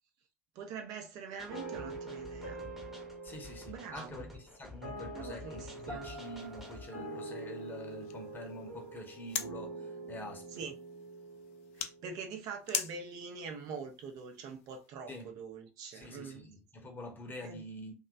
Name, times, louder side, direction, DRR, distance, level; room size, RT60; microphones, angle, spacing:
voice 1, 0.6-2.6 3.7-4.3 5.1-6.2 10.6-10.7 11.8-16.5 17.4-17.6, right 5 dB, 50° right, 0.6 m, -44 dB
sound 1, 1.4-6.9, left 2 dB, 5° right, 0.9 m, -50 dB
sound 2, 1.5-12.6, right 2 dB, 90° right, 1.0 m, -45 dB
voice 2, 3.2-10.5 15.1-15.3 15.9-17.9, left 1 dB, 25° left, 0.9 m, -46 dB
sound 3, 5.5-14.9, left 9 dB, 65° left, 0.4 m, -45 dB
2.9 x 2.3 x 2.4 m
figure-of-eight pair, 65°, 8 cm